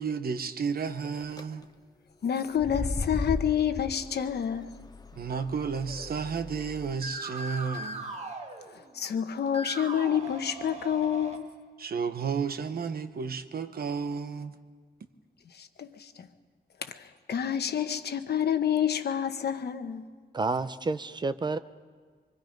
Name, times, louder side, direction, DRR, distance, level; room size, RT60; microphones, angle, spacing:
voice 1, 0.0-1.6 5.2-8.1 11.8-14.5, right 6 dB, 65° right, 1.1 m, -32 dB
sound 1, 1.0-1.4 2.5-6.9, left 2 dB, 25° left, 0.7 m, -36 dB
voice 2, 2.2-4.8 8.9-11.5 15.6-16.3 17.3-20.1, left 9 dB, 75° left, 1.1 m, -28 dB
sound 2, 5.9-6.6 6.9-9.1 9.5-11.4, right 2 dB, 40° right, 1.8 m, -40 dB
voice 3, 20.3-21.6, right 3 dB, 25° right, 0.6 m, -29 dB
25.0 x 24.5 x 5.3 m
wide cardioid pair, 170°, 17 cm